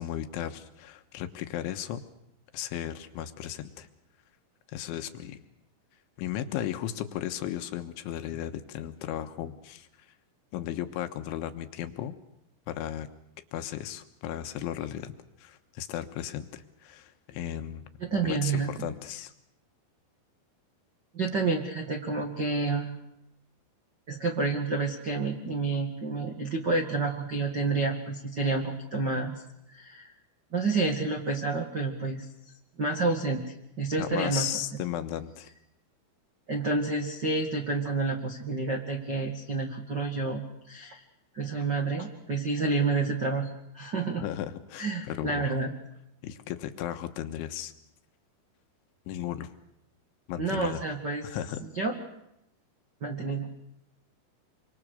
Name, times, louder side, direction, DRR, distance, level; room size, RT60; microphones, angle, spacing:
voice 1, 0.0-2.0 2.5-3.9 4.7-5.4 6.2-10.1 10.5-12.2 12.7-13.1 13.5-17.9 18.2-19.3 34.0-35.5 44.2-45.6 46.2-47.7 49.1-49.5 50.3-50.8 51.2-51.6, left 11 dB, 75° left, 8 dB, 3.5 m, -35 dB
voice 2, 18.1-18.9 21.1-23.0 24.1-29.4 29.7-30.1 30.5-32.2 32.8-34.4 36.5-41.0 41.3-44.2 44.8-45.7 50.4-51.2 51.7-51.9 53.0-53.7, right 3 dB, 80° right, 3 dB, 0.9 m, -29 dB
26.5 x 25.5 x 6.7 m, 0.82 s
omnidirectional pair, 5.9 m